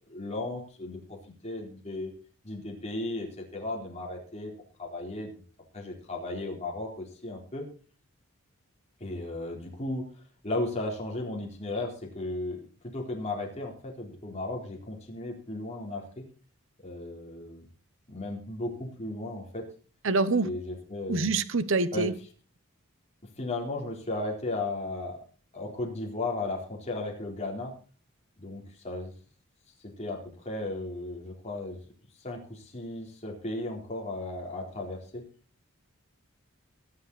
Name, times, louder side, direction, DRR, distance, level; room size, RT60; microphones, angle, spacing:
voice 1, 0.1-1.2 1.4-2.1 2.4-4.5 4.8-5.3 5.7-7.7 9.0-10.0 10.4-12.6 12.9-16.2 16.8-17.6 18.1-19.6 20.4-21.3 21.9-22.1 23.4-25.2 25.5-27.7 28.4-29.1 30.0-31.8 32.2-35.2, left 2 dB, 30° left, -1 dB, 4.0 m, -35 dB
voice 2, 20.0-20.5 21.1-22.1, right 3 dB, 60° right, 13 dB, 1.0 m, -25 dB
22.0 x 7.8 x 4.2 m, 0.38 s
head